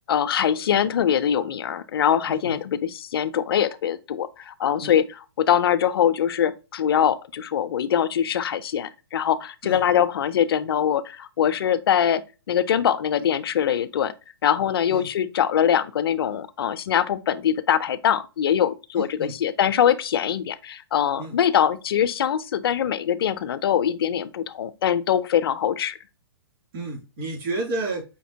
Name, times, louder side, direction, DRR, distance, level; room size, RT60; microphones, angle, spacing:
voice 1, 0.1-14.1 14.4-26.0, left 9 dB, 60° left, 0.4 m, -23 dB
voice 2, 2.3-2.6 4.8-5.0 9.6-9.8 14.9-15.1 19.0-19.3 21.2-21.4 26.7-28.1, right 2 dB, 50° right, 2.5 m, -31 dB
5.1 x 2.7 x 2.7 m
hypercardioid pair, 130°, 14 cm